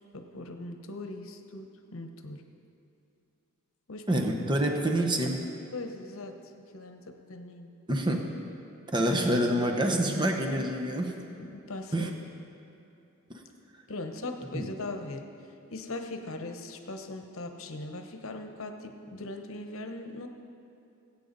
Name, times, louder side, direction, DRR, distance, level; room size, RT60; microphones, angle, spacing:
voice 1, 0.1-2.4 3.9-4.3 4.6-4.7 5.7-6.4 6.7-7.7 11.4-12.1 13.9-15.3 15.7-20.3, left 2 dB, 70° left, 5 dB, 0.9 m, -40 dB
voice 2, 4.1-5.4 7.9-8.3 8.9-11.1 11.9-12.1 13.3-13.4 14.5-14.7, right 1 dB, 20° right, 2 dB, 1.0 m, -27 dB
19.5 x 8.5 x 4.1 m, 2.7 s
head